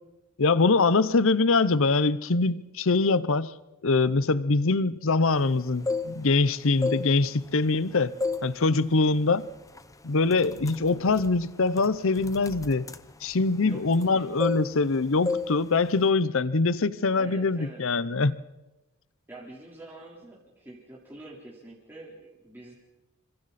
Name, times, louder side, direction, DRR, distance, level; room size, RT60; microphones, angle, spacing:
voice 1, 0.4-3.5 3.8-8.1 8.4-9.5 10.0-12.9 13.2-18.4, left 3 dB, 65° left, 17 dB, 0.8 m, -23 dB
sound 1, 5.6-6.4 6.7-7.8 8.2-8.5 8.9-9.2 9.8-9.9 10.3-14.1 14.4-15.0 15.3-15.5 15.8-16.1, left 3 dB, 15° left, 0.8 m, -32 dB
voice 2, 13.6-14.3 17.2-17.8 19.3-22.8, right 1 dB, 10° right, -5 dB, 4.0 m, -46 dB
27.5 x 25.5 x 4.2 m, 1.0 s
head